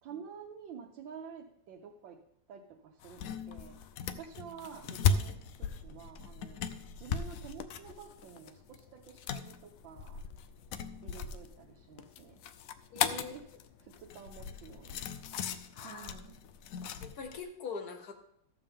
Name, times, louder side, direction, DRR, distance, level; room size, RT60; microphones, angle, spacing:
voice 1, 0.0-2.2 2.5-3.8 4.2-6.6 7.0-10.2 11.0-12.4 13.1-13.5 13.8-15.1 15.8-16.4, right 7 dB, 90° right, -1 dB, 1.5 m, -49 dB
sound 1, 3.0-17.4, left 6 dB, 85° left, 0.7 m, -37 dB
voice 2, 12.9-13.4 15.7-16.1 17.0-18.1, left 5 dB, 60° left, 6 dB, 1.4 m, -42 dB
13.5 x 7.0 x 3.6 m, 0.77 s
omnidirectional pair, 2.0 m